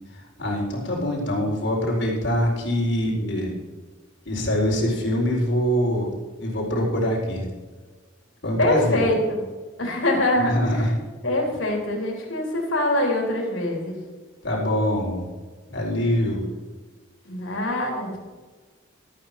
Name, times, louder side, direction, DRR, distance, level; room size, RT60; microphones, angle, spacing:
voice 1, 0.4-3.5 4.2-7.5 8.4-9.1 10.4-10.9 14.4-15.3 15.7-16.5, equal, 60° left, -2 dB, 4.4 m, -24 dB
voice 2, 8.6-9.4 9.8-10.8 11.2-14.0 17.3-18.2, left 1 dB, 80° left, 0 dB, 3.8 m, -24 dB
13.5 x 9.1 x 5.9 m, 1.4 s
head